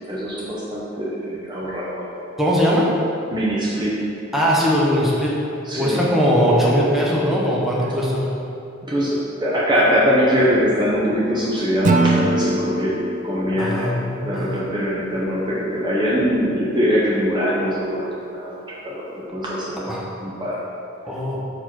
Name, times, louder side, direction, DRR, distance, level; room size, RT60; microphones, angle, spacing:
voice 1, 0.1-2.1 3.3-4.1 5.6-6.0 8.8-13.9 14.2-19.0 19.3-20.6, equal, 25° right, -6 dB, 0.8 m, -22 dB
voice 2, 2.4-2.9 4.3-5.4 5.7-8.3 13.6-14.6 19.8-20.0 21.0-21.4, equal, ahead, -6 dB, 0.9 m, -20 dB
Acoustic guitar / Strum, 11.8-15.0, right 2 dB, 40° right, 0.4 m, -23 dB
6.2 x 4.7 x 4.4 m, 2.7 s
head